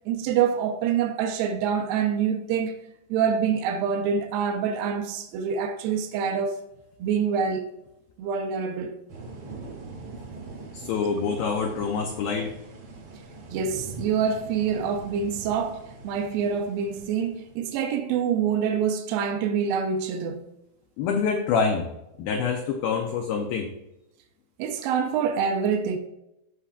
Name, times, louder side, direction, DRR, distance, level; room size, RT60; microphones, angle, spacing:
voice 1, 0.0-2.8 3.1-6.6 7.0-7.6 8.2-8.9 13.5-15.8 16.0-20.4 24.6-26.0, right 7 dB, 85° right, 2.1 m, -26 dB
sound 1, 9.1-17.9, right 3 dB, 65° right, 1.4 m, -42 dB
voice 2, 10.7-12.5 21.0-21.9 22.2-23.7, left 5 dB, 90° left, 2.0 m, -26 dB
14.5 x 5.7 x 2.4 m
omnidirectional pair, 5.2 m